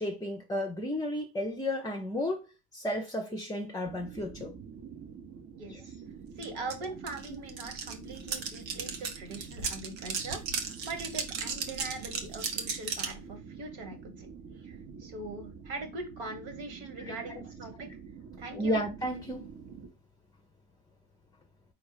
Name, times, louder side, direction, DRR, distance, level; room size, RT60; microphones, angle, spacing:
voice 1, 0.0-4.5 5.7-5.8 17.0-17.5 18.5-19.5, left 1 dB, 10° left, 0.6 m, -33 dB
sound 1, 3.8-19.9, right 6 dB, 30° right, 0.8 m, -47 dB
voice 2, 5.6-5.9 6.4-14.3 14.6-17.9 18.4-18.8, right 3 dB, 65° right, 1.7 m, -41 dB
sound 2, 6.4-6.5 6.7-13.2, right 5 dB, 90° right, 0.9 m, -35 dB
4.3 x 2.5 x 4.8 m
hypercardioid pair, 65°, 50 cm